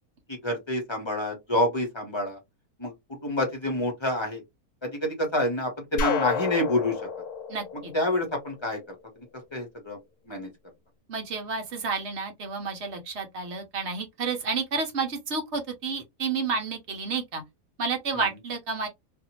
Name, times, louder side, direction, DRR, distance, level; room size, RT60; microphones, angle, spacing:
voice 1, 0.3-2.4 2.8-4.4 4.8-7.1 7.9-8.9 9.5-10.0 10.3-10.5 18.1-18.3, left 1 dB, 20° left, 0.9 m, -28 dB
sound 1, 6.0-8.8, left 5 dB, 85° left, 1.1 m, -30 dB
voice 2, 7.5-7.9 11.1-17.4 17.8-18.9, right 4 dB, 55° right, 1.0 m, -30 dB
2.8 x 2.6 x 2.9 m
omnidirectional pair, 1.6 m